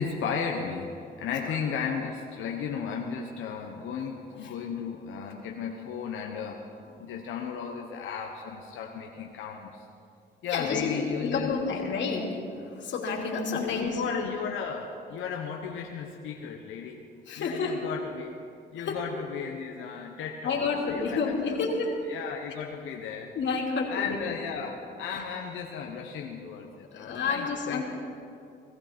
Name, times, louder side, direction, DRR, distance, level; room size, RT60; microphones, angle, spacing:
voice 1, 0.0-9.8 10.4-11.5 13.5-17.0 17.4-18.3 18.7-21.6 22.1-23.3 23.9-27.8, left 6 dB, 85° left, 1 dB, 1.2 m, -35 dB
voice 2, 10.5-14.1 17.3-17.8 18.8-19.1 20.4-22.1 23.3-24.3 25.1-25.2 26.9-27.8, left 4 dB, 65° left, -1 dB, 2.7 m, -30 dB
18.5 x 15.0 x 4.4 m, 2.6 s
cardioid pair, 90°, 20 cm